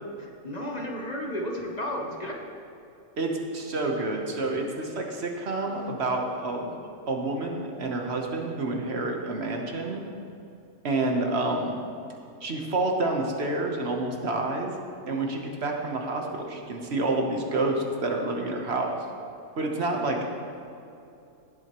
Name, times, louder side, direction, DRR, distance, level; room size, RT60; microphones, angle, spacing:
voice 1, 0.2-2.4, equal, 35° left, 0 dB, 0.9 m, -33 dB
voice 2, 3.2-6.8 7.1-10.0 10.8-11.7 12.4-14.7 15.0-19.0 19.6-20.4, right 2 dB, 60° right, 2 dB, 1.3 m, -28 dB
17.0 x 7.7 x 3.0 m, 2.7 s
omnidirectional pair, 1.3 m